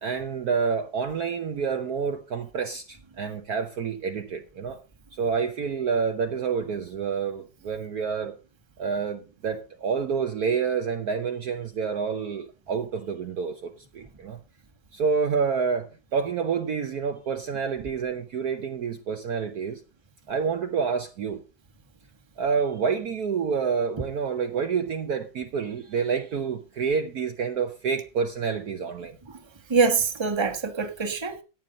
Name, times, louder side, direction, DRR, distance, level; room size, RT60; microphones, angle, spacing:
voice 1, 0.0-4.8 5.1-8.4 8.8-14.4 14.9-19.8 20.3-21.4 22.4-29.2, right 6 dB, 60° right, 1.2 m, -28 dB
voice 2, 29.7-31.4, right 4 dB, 15° right, 1.3 m, -24 dB
14.5 x 9.3 x 4.0 m
omnidirectional pair, 2.1 m